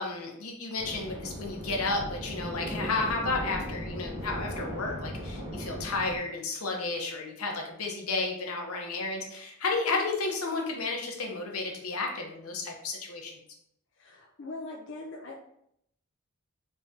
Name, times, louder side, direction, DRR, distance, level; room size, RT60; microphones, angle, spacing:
voice 1, 0.0-13.4, left 3 dB, 85° left, 1 dB, 0.8 m, -32 dB
sound 1, 0.8-6.2, equal, 15° right, 0.9 m, -37 dB
voice 2, 14.0-15.4, left 2 dB, 55° left, 0 dB, 0.4 m, -41 dB
3.6 x 3.2 x 2.7 m, 0.73 s
head